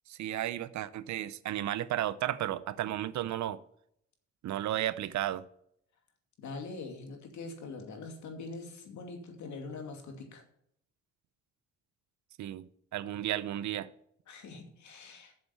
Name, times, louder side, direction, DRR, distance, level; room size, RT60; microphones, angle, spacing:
voice 1, 0.1-3.6 4.4-5.4 12.4-13.9, right 12 dB, 70° right, 0.7 m, -33 dB
voice 2, 6.4-10.4 14.3-15.3, left 3 dB, 70° left, 2.6 m, -43 dB
7.7 x 7.3 x 8.2 m
cardioid pair, 90°, 30 cm